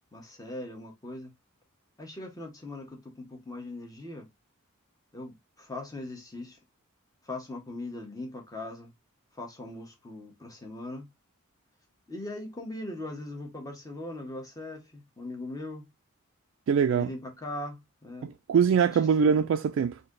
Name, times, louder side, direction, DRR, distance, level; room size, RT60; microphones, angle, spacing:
voice 1, 0.1-1.3 2.0-4.3 5.1-6.6 7.2-8.9 9.4-11.1 12.1-15.9 16.9-18.3 18.9-19.3, left 2 dB, 15° left, 1.2 m, -40 dB
voice 2, 16.7-17.1 18.2-20.0, right 7 dB, 60° right, 0.3 m, -23 dB
4.0 x 2.8 x 3.8 m
head